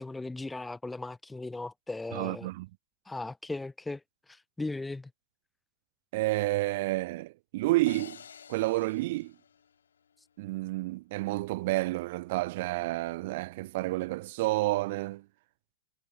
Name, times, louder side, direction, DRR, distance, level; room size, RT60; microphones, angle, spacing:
voice 1, 0.0-2.5 3.0-5.1, left 2 dB, 10° left, 1.0 m, -38 dB
voice 2, 2.1-2.7 6.1-8.2 8.5-9.3 10.4-15.2, right 19 dB, 55° right, 1.1 m, -30 dB
sound 1, 7.9-10.2, left 7 dB, 80° left, 3.2 m, -50 dB
hypercardioid pair, 105°, 0 cm